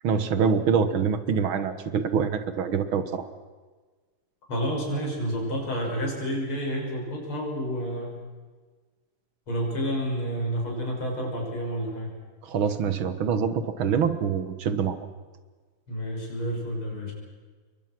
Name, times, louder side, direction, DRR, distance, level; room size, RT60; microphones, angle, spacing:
voice 1, 0.0-3.3 12.4-15.0, right 6 dB, 70° right, 11 dB, 2.1 m, -25 dB
voice 2, 4.5-8.2 9.5-12.1 15.9-17.1, equal, 75° left, 0 dB, 7.3 m, -29 dB
28.0 x 23.5 x 6.1 m, 1.4 s
omnidirectional pair, 2.4 m